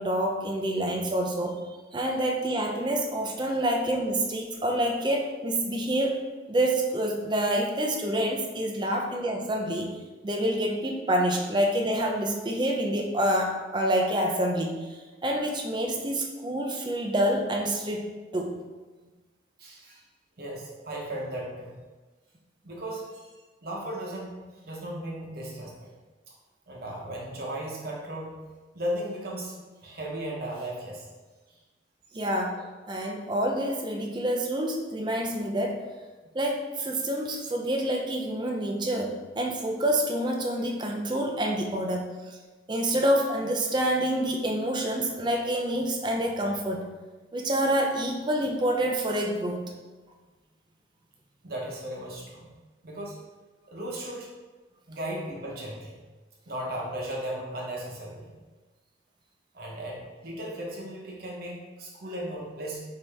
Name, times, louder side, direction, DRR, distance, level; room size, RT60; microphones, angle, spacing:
voice 1, 0.0-1.6 1.9-6.2 6.5-10.0 10.2-18.1 18.3-18.6 32.1-35.9 36.3-42.4 42.7-46.9 47.3-49.7, right 1 dB, 25° right, 1 dB, 0.5 m, -27 dB
voice 2, 19.6-20.0 20.4-21.8 22.6-25.9 26.7-28.4 28.7-31.1 32.1-32.2 51.4-52.5 52.8-53.2 53.7-54.3 54.9-56.0 56.5-58.3 59.5-62.8, right 1 dB, 55° right, -2 dB, 1.0 m, -36 dB
5.4 x 2.8 x 3.4 m, 1.3 s
head